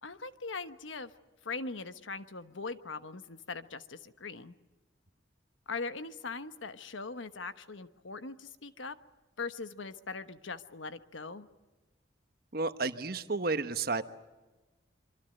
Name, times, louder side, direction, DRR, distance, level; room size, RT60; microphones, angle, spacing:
voice 1, 0.0-1.1 1.4-4.5 5.7-9.0 9.4-11.5, left 4 dB, 90° left, 11 dB, 1.2 m, -41 dB
voice 2, 12.5-14.0, right 3 dB, 50° right, 10 dB, 1.2 m, -31 dB
26.0 x 24.5 x 7.9 m, 1.2 s
head